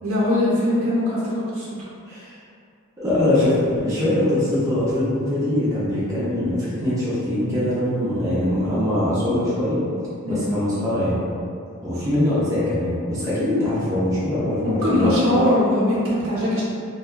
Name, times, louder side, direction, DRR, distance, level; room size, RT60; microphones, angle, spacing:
voice 1, 0.0-1.7 10.2-10.4 14.6-16.6, left 1 dB, 70° right, -8 dB, 0.8 m, -21 dB
voice 2, 3.0-9.8 10.3-11.2 11.8-15.1, left 1 dB, 15° right, -10 dB, 0.4 m, -22 dB
2.7 x 2.2 x 2.2 m, 2.3 s
head